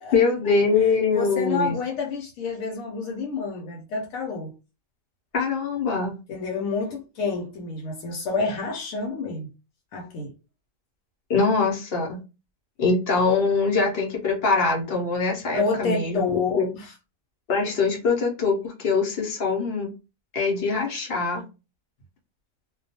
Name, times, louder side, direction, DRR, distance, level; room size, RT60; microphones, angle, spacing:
voice 1, 0.1-1.8 5.3-6.2 11.3-12.2 12.8-16.2 16.6-16.7 17.5-19.9 20.3-21.4, left 4 dB, 55° left, 0.8 m, -23 dB
voice 2, 1.1-4.5 6.3-9.5 9.9-10.3 15.5-16.9, left 4 dB, 85° left, 1.0 m, -28 dB
2.3 x 2.2 x 2.7 m
omnidirectional pair, 1.4 m